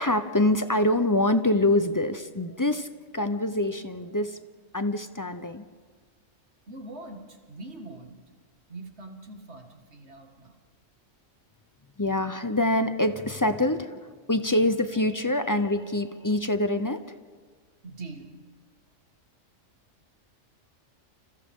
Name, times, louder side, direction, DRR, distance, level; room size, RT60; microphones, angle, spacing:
voice 1, 0.0-2.9 3.1-4.4 4.7-5.7 12.0-17.0, left 1 dB, 20° left, 10 dB, 0.6 m, -25 dB
voice 2, 6.7-8.2 8.7-10.6 17.8-18.3, right 2 dB, 55° right, 4 dB, 2.3 m, -43 dB
29.5 x 27.0 x 3.7 m, 1.5 s
omnidirectional pair, 1.3 m